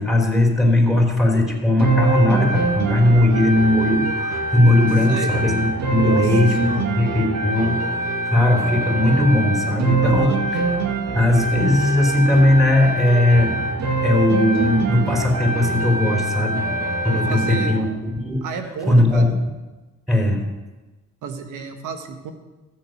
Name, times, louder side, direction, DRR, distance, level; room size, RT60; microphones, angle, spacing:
voice 1, 0.0-10.6 11.1-13.6 14.0-16.6 17.0-18.4 18.8-19.4 20.1-20.4, left 1 dB, ahead, 1 dB, 3.5 m, -18 dB
sound 1, 1.8-17.8, right 2 dB, 60° right, 2.3 m, -24 dB
voice 2, 5.9-6.8 10.0-10.4 17.2-17.7 18.4-19.3 21.2-22.3, right 6 dB, 80° right, 6 dB, 1.6 m, -32 dB
14.5 x 6.7 x 7.8 m, 1.2 s
cardioid pair, 90°, 30 cm